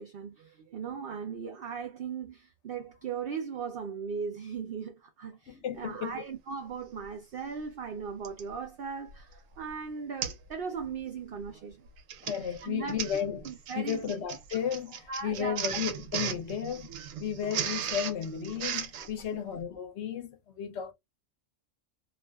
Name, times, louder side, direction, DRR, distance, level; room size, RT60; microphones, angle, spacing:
voice 1, 0.0-11.9 12.6-13.0 13.4-14.2 15.1-15.8 17.4-17.5 19.2-19.4, right 6 dB, 60° right, 0.6 m, -38 dB
voice 2, 5.5-6.2 12.2-13.5 13.7-16.9 17.2-20.9, left 8 dB, 65° left, 0.8 m, -34 dB
Printer, 7.1-7.2 8.2-8.5 9.1-9.3 9.6-9.7 10.2-10.5 10.8-11.1 11.9-19.1, right 8 dB, 85° right, 1.0 m, -36 dB
2.4 x 2.4 x 2.2 m
omnidirectional pair, 1.4 m